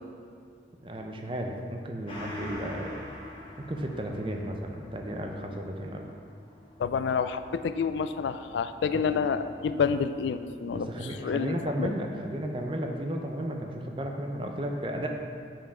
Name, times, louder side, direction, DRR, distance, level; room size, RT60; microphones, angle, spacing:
voice 1, 0.8-2.9 3.7-6.1 8.9-9.0 10.7-15.1, right 1 dB, 30° right, 2 dB, 0.5 m, -34 dB
Gong, 2.1-11.0 11.4-11.5, left 1 dB, 30° left, 1.0 m, -46 dB
voice 2, 6.8-11.9, left 6 dB, 80° left, 11 dB, 0.3 m, -29 dB
5.8 x 5.2 x 4.9 m, 2.3 s
head